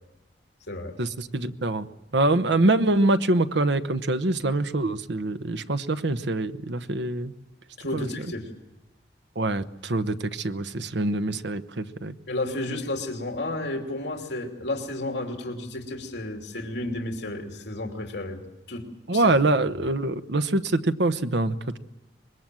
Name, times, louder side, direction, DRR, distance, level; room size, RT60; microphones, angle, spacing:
voice 1, 1.0-1.9 2.1-7.3 7.9-8.1 9.4-12.1 19.1-21.8, right 2 dB, 80° right, 10 dB, 1.0 m, -24 dB
voice 2, 7.8-8.5 12.3-18.4 18.7-19.3, left 2 dB, 75° left, 3 dB, 2.9 m, -32 dB
25.0 x 21.5 x 7.7 m, 0.99 s
head